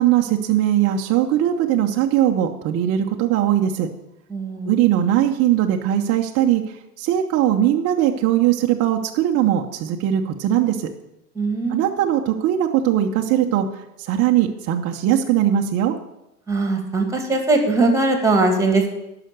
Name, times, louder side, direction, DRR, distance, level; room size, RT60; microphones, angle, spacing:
voice 1, 0.0-3.9 4.7-6.6 7.0-10.9 11.7-16.0, right 11 dB, 30° right, 2 dB, 0.8 m, -20 dB
voice 2, 4.3-4.7 11.4-11.9 16.5-18.9, right 3 dB, 5° right, 5 dB, 2.1 m, -20 dB
12.0 x 5.9 x 6.7 m, 0.89 s
hypercardioid pair, 100°, 48 cm